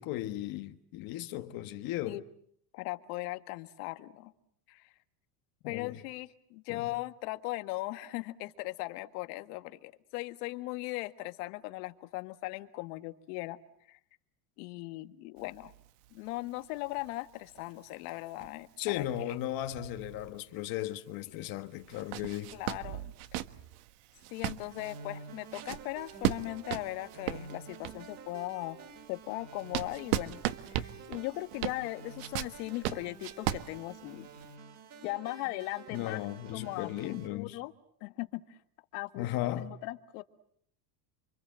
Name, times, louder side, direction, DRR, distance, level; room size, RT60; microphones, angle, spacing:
voice 1, 0.0-2.2 5.6-6.0 6.7-6.9 18.8-22.5 35.9-37.6 39.2-39.7, left 13 dB, 45° left, 1.4 m, -36 dB
voice 2, 2.7-4.3 4.7-4.8 5.7-13.6 13.9-14.0 14.6-15.7 16.1-18.7 19.0-19.1 22.5-23.1 24.3-28.8 29.1-30.4 30.7-34.3 35.0-36.3 36.5-36.9 37.3-37.7 38.0-38.6 38.9-40.2, left 19 dB, 70° left, 1.8 m, -38 dB
sound 1, 15.4-20.7 21.1-21.2 21.8-28.2 28.7-34.5, right 13 dB, 65° right, 1.5 m, -37 dB
sound 2, 24.7-37.3, right 4 dB, 35° right, 3.8 m, -50 dB
29.0 x 25.0 x 7.6 m
cardioid pair, 160°, 48 cm